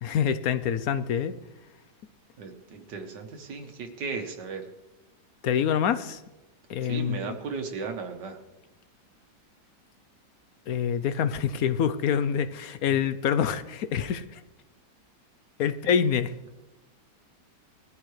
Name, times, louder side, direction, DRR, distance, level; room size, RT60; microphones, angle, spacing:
voice 1, 0.0-1.4 5.4-6.2 6.7-7.4 10.7-14.4 15.6-16.3, left 8 dB, 65° left, 1.0 m, -26 dB
voice 2, 2.4-4.7 6.8-8.4, right 5 dB, 80° right, 1.8 m, -36 dB
21.0 x 14.5 x 3.2 m
omnidirectional pair, 1.8 m